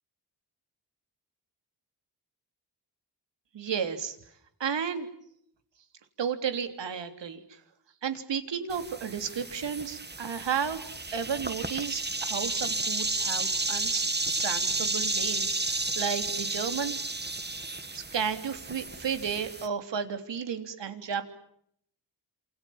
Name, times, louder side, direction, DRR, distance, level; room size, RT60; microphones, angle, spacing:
voice 1, 3.5-4.2 4.6-5.1 6.2-7.6 8.0-10.8 11.1-14.0 14.4-17.0 17.9-21.2, right 7 dB, 85° right, 8 dB, 3.6 m, -33 dB
sound 1, 8.7-19.7, right 3 dB, 25° right, 2.1 m, -32 dB
28.0 x 28.0 x 7.4 m, 0.70 s
cardioid pair, 80°, 42 cm